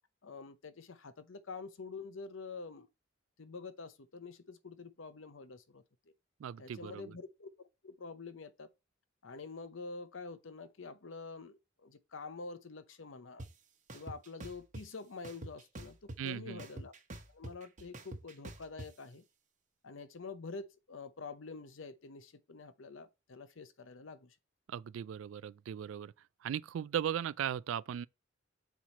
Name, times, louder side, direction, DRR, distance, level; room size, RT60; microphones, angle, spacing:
voice 1, 0.2-2.9 3.4-5.8 6.6-7.5 7.8-8.7 9.2-13.5 13.9-16.9 17.3-19.2 19.8-24.3, left 4 dB, 70° left, 0.7 m, -47 dB
voice 2, 6.4-7.1 16.2-16.7 24.7-26.1 26.4-28.1, right 9 dB, 70° right, 0.3 m, -37 dB
sound 1, 13.4-13.5 13.9-14.8 15.2-16.3 16.6-18.9, right 1 dB, 40° right, 1.0 m, -45 dB
7.3 x 4.6 x 4.1 m
head